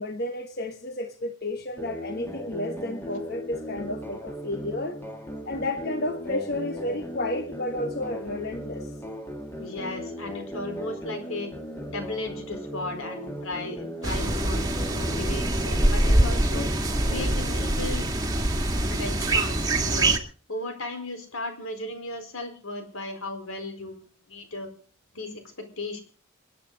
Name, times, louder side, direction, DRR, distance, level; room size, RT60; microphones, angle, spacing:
voice 1, 0.0-5.0 5.5-8.9, left 1 dB, 50° left, 6 dB, 1.2 m, -32 dB
sound 1, 1.8-17.8, equal, 10° left, 1.8 m, -37 dB
voice 2, 9.6-11.5 11.9-16.7 17.1-18.1 18.9-20.2 20.5-24.0 24.3-24.7 25.1-26.0, left 2 dB, 80° left, 6 dB, 4.5 m, -35 dB
sound 2, 14.0-20.2, right 1 dB, 20° right, 1.7 m, -24 dB
28.0 x 9.8 x 4.0 m, 0.39 s
head